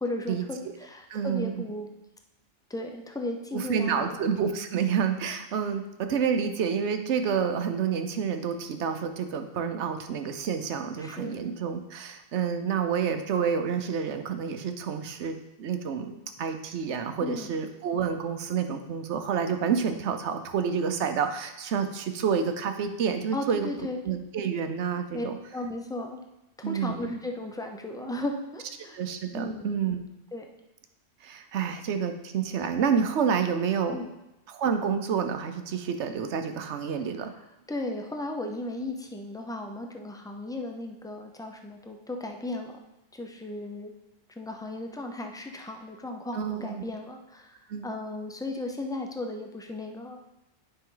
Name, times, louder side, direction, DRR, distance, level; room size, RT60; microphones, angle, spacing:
voice 1, 0.0-1.9 2.7-4.2 11.0-11.4 17.2-17.5 23.3-24.0 25.1-26.2 26.6-29.0 29.3-29.8 30.3-30.4 33.9-34.1 37.7-42.7 43.1-43.9 44.4-50.4, left 1 dB, 5° left, 3 dB, 0.4 m, -35 dB
voice 2, 1.1-1.6 3.5-23.7 24.0-25.4 26.6-27.1 28.9-30.0 31.2-34.0 34.5-37.3 46.3-46.8 47.7-47.8, right 7 dB, 65° right, 7 dB, 1.0 m, -29 dB
9.8 x 5.4 x 3.9 m, 0.94 s
omnidirectional pair, 1.3 m